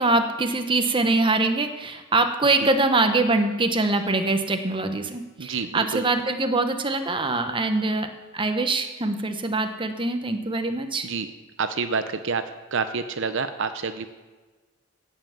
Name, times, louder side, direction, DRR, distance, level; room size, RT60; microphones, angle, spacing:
voice 1, 0.0-11.1, right 2 dB, 25° right, 7 dB, 0.9 m, -23 dB
voice 2, 5.4-6.1 11.0-11.3 11.6-12.4 12.7-14.1, right 5 dB, 65° right, 10 dB, 0.7 m, -28 dB
16.5 x 5.7 x 7.2 m, 1.3 s
head